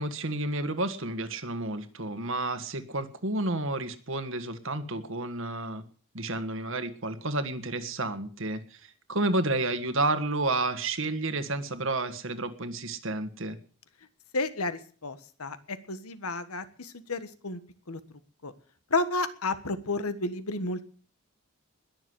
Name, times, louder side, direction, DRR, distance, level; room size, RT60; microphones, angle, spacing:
voice 1, 0.0-5.8 6.1-13.6, right 2 dB, 60° right, 10 dB, 1.6 m, -31 dB
voice 2, 14.3-17.6 17.9-18.0 18.4-18.5 18.9-20.8, left 2 dB, 80° left, 12 dB, 1.5 m, -31 dB
21.0 x 7.3 x 7.9 m, 0.44 s
head